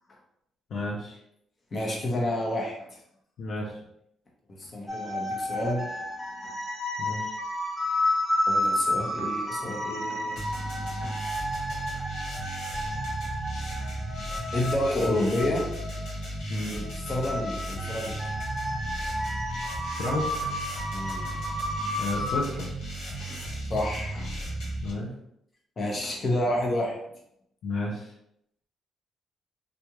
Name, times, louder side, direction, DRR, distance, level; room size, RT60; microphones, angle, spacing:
voice 1, 0.7-1.2 3.4-3.8 7.0-7.3 16.5-16.8 20.0-20.5 22.0-22.7 24.8-25.1 27.6-28.1, left 2 dB, 70° left, -3 dB, 0.7 m, -32 dB
voice 2, 1.7-3.0 4.5-6.0 6.4-6.5 8.5-11.2 14.5-15.6 16.7-18.2 20.9-22.0 23.2-23.4 23.7-24.3 25.8-27.0, left 1 dB, 40° left, -1 dB, 1.0 m, -30 dB
sound 1, 4.9-22.4, left 1 dB, 5° left, 1.1 m, -32 dB
sound 2, 10.3-24.9, right 1 dB, 90° left, 1.1 m, -35 dB
3.5 x 2.5 x 3.0 m, 0.76 s
cardioid pair, 90°, 0 cm